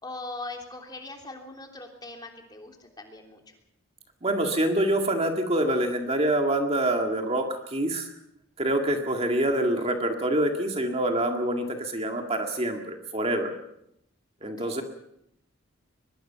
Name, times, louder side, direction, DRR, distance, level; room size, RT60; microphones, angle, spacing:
voice 1, 0.0-3.4 14.4-14.8, left 2 dB, 20° left, 2 dB, 3.3 m, -41 dB
voice 2, 4.2-8.1 8.6-13.5 14.4-14.8, right 1 dB, 30° right, 3 dB, 2.0 m, -26 dB
23.0 x 22.0 x 5.8 m, 0.78 s
head